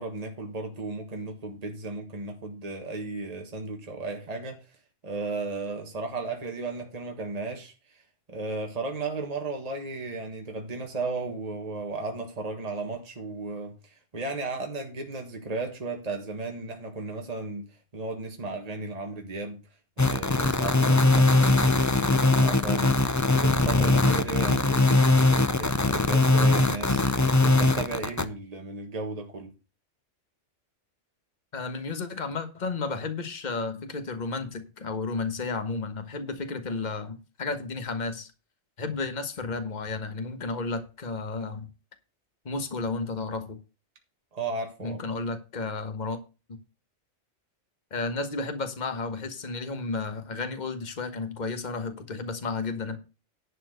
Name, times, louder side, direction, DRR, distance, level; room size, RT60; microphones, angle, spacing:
voice 1, 0.0-4.8 5.0-8.0 8.3-19.6 20.0-22.9 23.4-29.5 44.3-45.0, right 3 dB, 35° right, 1.6 m, -35 dB
sound 1, 20.0-28.2, left 2 dB, 20° left, 0.5 m, -21 dB
voice 2, 31.5-38.3 38.8-41.7 42.4-43.6 44.8-46.2 46.5-46.6 47.9-53.0, left 3 dB, 40° left, 1.4 m, -32 dB
11.0 x 4.4 x 7.9 m
omnidirectional pair, 1.2 m